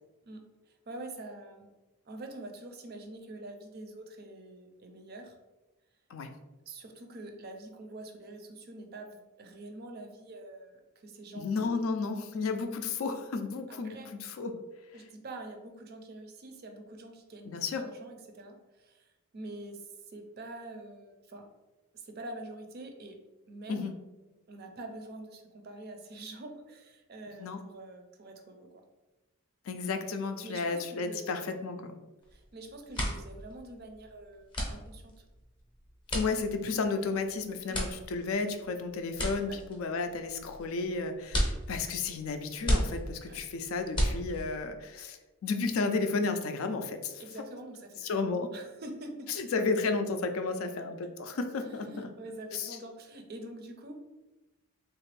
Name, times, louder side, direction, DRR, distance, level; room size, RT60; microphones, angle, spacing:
voice 1, 0.2-1.7 2.1-5.4 6.7-11.8 13.7-14.1 14.9-21.5 21.9-23.2 23.5-24.0 24.5-28.8 30.4-31.4 32.3-35.2 37.7-37.9 39.5-39.6 43.2-43.4 47.2-49.3 51.6-53.9, right 2 dB, 45° right, 5 dB, 0.4 m, -46 dB
voice 2, 11.3-14.6 17.5-17.8 23.7-23.9 27.4-27.6 29.7-32.0 36.1-47.2 48.0-48.5 49.4-52.1 52.5-52.8, left 4 dB, 70° left, 7 dB, 0.4 m, -33 dB
sound 1, 32.2-32.5 32.8-44.7, equal, 20° left, 0.6 m, -34 dB
3.3 x 2.5 x 3.2 m, 1.1 s
head